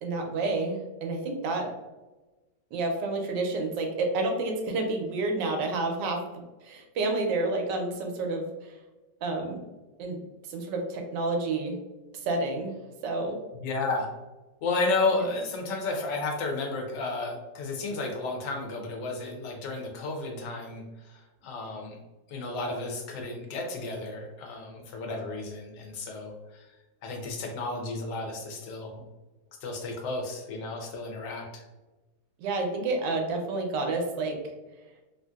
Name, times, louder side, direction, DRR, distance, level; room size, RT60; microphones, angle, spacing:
voice 1, 0.0-1.7 2.7-8.5 9.2-9.6 10.0-10.2 10.5-11.8 12.2-12.7 13.0-13.4 15.1-15.2 32.4-34.4, right 2 dB, 85° right, 3 dB, 1.3 m, -29 dB
voice 2, 13.5-14.1 14.6-22.0 22.3-26.7 27.0-29.0 29.6-31.6, left 3 dB, 80° left, 2 dB, 1.3 m, -32 dB
3.2 x 2.6 x 2.3 m, 1.1 s
omnidirectional pair, 1.9 m